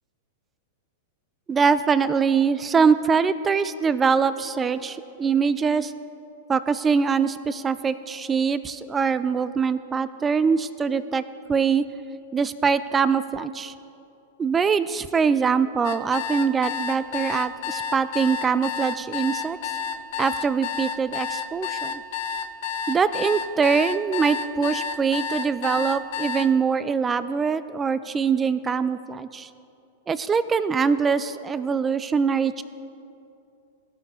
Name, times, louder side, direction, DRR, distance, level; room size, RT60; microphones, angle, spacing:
voice 1, 1.5-5.9 6.5-11.2 11.5-11.8 12.3-13.7 14.4-19.6 20.2-22.0 22.9-29.5 30.1-32.6, right 6 dB, 20° right, 14 dB, 0.4 m, -23 dB
sound 1, 15.8-26.5, left 7 dB, 55° left, 0.6 m, -30 dB
17.5 x 6.7 x 3.4 m, 2.7 s
hypercardioid pair, 100°, 0 cm